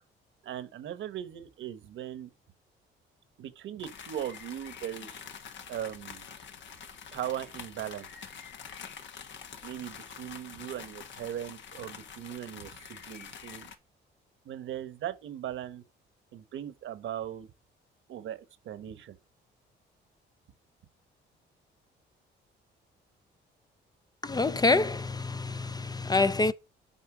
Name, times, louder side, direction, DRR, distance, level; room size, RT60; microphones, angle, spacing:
voice 1, 0.4-2.3 3.4-5.2 5.7-6.3 7.1-8.1 9.6-13.7 14.4-15.8 16.3-17.5 18.1-19.2, right 11 dB, 75° right, 1.1 m, -39 dB
sound 1, 3.8-13.8, left 7 dB, 65° left, 1.3 m, -46 dB
voice 2, 24.2-26.5, left 3 dB, 20° left, 0.5 m, -26 dB
8.6 x 4.2 x 6.0 m
cardioid pair, 90°, 20 cm